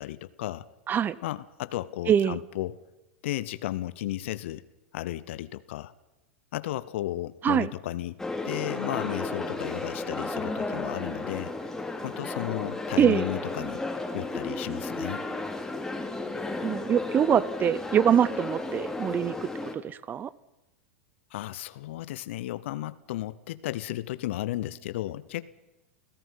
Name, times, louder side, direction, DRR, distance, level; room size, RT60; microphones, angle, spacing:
voice 1, 0.0-0.7 1.2-2.8 3.2-4.6 4.9-5.9 6.5-11.5 12.0-13.8 14.1-15.3 21.3-25.5, left 15 dB, 65° left, 16 dB, 0.8 m, -34 dB
voice 2, 2.1-2.4 7.4-7.7 13.0-13.3 16.6-19.5 19.7-20.3, right 8 dB, 25° right, 21 dB, 0.8 m, -24 dB
sound 1, 8.2-19.7, left 2 dB, 5° left, 2.7 m, -33 dB
29.0 x 17.0 x 5.7 m, 1.0 s
hypercardioid pair, 105°, 7 cm